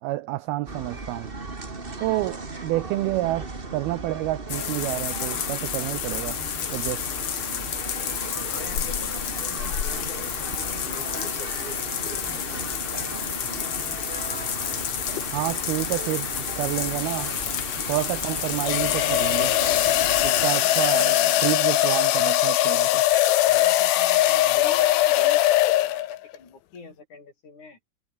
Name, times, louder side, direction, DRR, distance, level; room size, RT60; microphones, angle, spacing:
voice 1, 0.0-1.3 2.0-6.4 6.7-7.0 15.3-16.3 16.6-17.4 17.9-19.5 20.2-23.0, right 17 dB, 80° right, 2.2 m, -29 dB
sound 1, 0.7-20.5, right 3 dB, 40° right, 0.7 m, -37 dB
sound 2, 4.5-21.5, left 8 dB, 60° left, 1.4 m, -30 dB
voice 2, 8.5-12.9 20.3-21.4 23.4-27.8, left 4 dB, 40° left, 6.5 m, -44 dB
sound 3, 15.1-15.4 17.0-26.3, left 15 dB, 85° left, 3.8 m, -22 dB
omnidirectional pair, 5.2 m